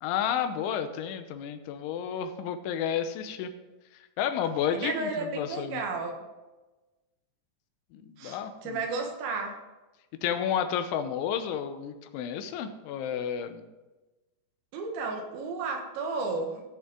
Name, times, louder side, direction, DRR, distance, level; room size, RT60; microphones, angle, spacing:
voice 1, 0.0-3.5 4.2-5.8 7.9-8.8 10.2-13.6, left 8 dB, 85° left, 9 dB, 3.2 m, -31 dB
voice 2, 4.8-6.2 8.2-9.6 14.7-16.6, right 4 dB, 75° right, 2 dB, 3.6 m, -33 dB
16.5 x 6.7 x 3.8 m, 1.1 s
omnidirectional pair, 5.3 m